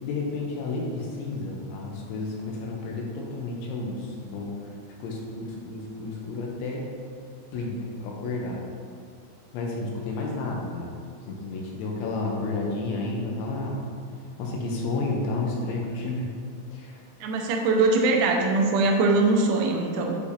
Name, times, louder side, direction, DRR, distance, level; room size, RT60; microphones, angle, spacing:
voice 1, 0.0-4.5 5.0-6.9 7.5-8.6 9.5-10.9 11.3-13.8 14.4-16.3 16.7-16.9, left 3 dB, 85° left, -1 dB, 3.1 m, -31 dB
voice 2, 17.2-20.2, right 3 dB, 80° right, 1 dB, 3.0 m, -22 dB
8.4 x 4.9 x 2.8 m, 2.4 s
omnidirectional pair, 5.5 m